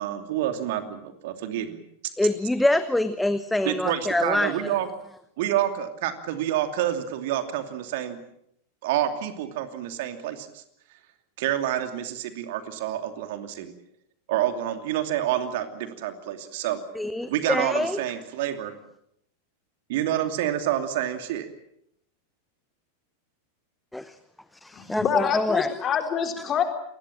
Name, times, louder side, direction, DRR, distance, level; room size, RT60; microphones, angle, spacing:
voice 1, 0.0-1.8 3.6-4.9 5.4-8.2 8.8-10.6 11.4-13.7 14.3-16.8 17.3-18.7 19.9-21.5, right 11 dB, 50° right, 8 dB, 2.7 m, -28 dB
voice 2, 2.2-4.7 16.9-18.0 23.9-24.1 24.6-25.7, left 1 dB, 5° left, 13 dB, 1.0 m, -25 dB
voice 3, 24.7-26.6, left 8 dB, 25° left, 5 dB, 4.0 m, -26 dB
28.5 x 20.5 x 7.5 m, 0.74 s
figure-of-eight pair, 90°, 0 cm